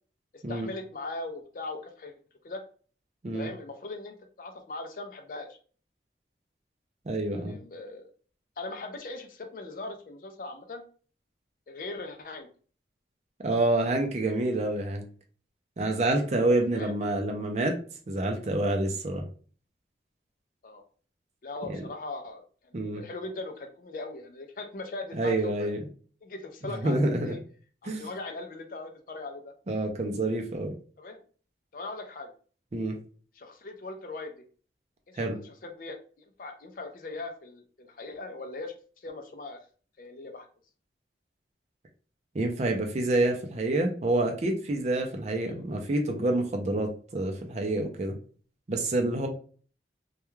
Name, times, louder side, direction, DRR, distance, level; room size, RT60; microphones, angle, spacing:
voice 1, 0.3-2.1 2.4-2.6 3.3-5.6 7.3-8.1 8.6-10.8 11.7-12.5 16.7-16.9 20.6-20.8 21.4-25.7 26.2-27.4 27.8-29.5 31.0-31.2 31.7-32.3 33.3-34.4 35.1-39.6 40.0-40.5 45.5-45.6, left 2 dB, 50° left, 6 dB, 0.4 m, -40 dB
voice 2, 7.1-7.6 13.4-15.1 15.8-17.8 18.1-19.2 21.6-21.8 22.7-23.0 25.1-25.8 26.8-27.3 27.8-28.1 29.7-30.7 32.7-33.0 35.2-35.4 42.3-48.2 48.7-49.3, right 2 dB, 40° right, 3 dB, 0.4 m, -27 dB
2.3 x 2.2 x 3.0 m, 0.42 s
head